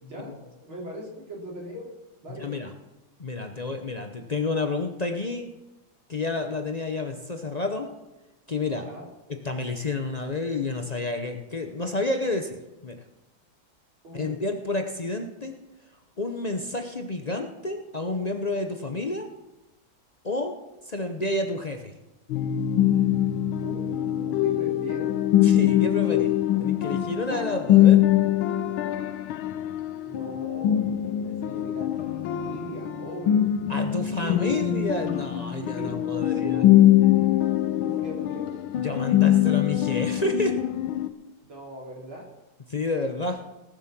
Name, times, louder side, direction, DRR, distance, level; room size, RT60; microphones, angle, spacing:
voice 1, 0.0-1.8 2.2-2.5 8.8-9.1 14.0-14.4 23.6-25.1 30.0-33.5 34.0-34.4 35.5-36.8 37.7-38.6 41.5-42.3, equal, 80° right, -3 dB, 4.3 m, -40 dB
voice 2, 2.3-2.7 3.2-5.5 6.1-7.9 8.5-8.8 9.4-13.0 14.1-15.5 16.2-19.3 20.2-20.6 20.8-21.9 25.4-26.3 26.6-28.0 33.7-36.7 38.8-40.6 42.7-43.4, left 2 dB, 60° left, 5 dB, 0.4 m, -30 dB
sound 1, 22.3-41.1, left 12 dB, 80° left, 1.6 m, -23 dB
18.5 x 7.7 x 6.0 m, 1.0 s
omnidirectional pair, 2.2 m